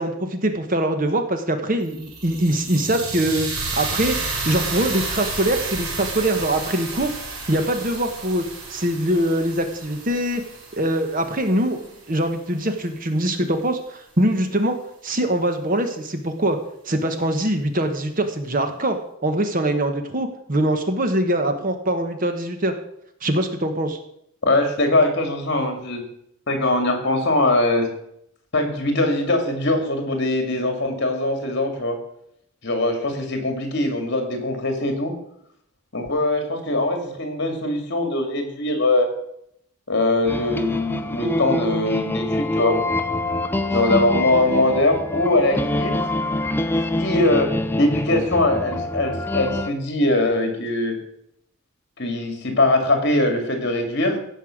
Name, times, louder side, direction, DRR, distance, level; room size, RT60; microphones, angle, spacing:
voice 1, 0.0-3.5 3.7-4.1 4.4-7.1 7.5-8.4 8.7-10.4 10.7-11.8 12.1-14.7 15.0-16.6 16.9-22.7 23.2-24.0, right 1 dB, 40° right, 7 dB, 1.1 m, -23 dB
sound 1, 1.8-12.0, right 3 dB, 85° right, 3.5 m, -31 dB
voice 2, 24.4-26.0 26.5-27.9 28.5-32.0 32.6-35.1 35.9-39.1 39.9-42.8 43.7-46.0 47.0-51.0 52.0-54.2, left 2 dB, 50° left, 4 dB, 2.4 m, -21 dB
sound 2, 40.3-49.7, left 1 dB, 10° left, 0.5 m, -25 dB
16.0 x 5.6 x 6.4 m, 0.74 s
head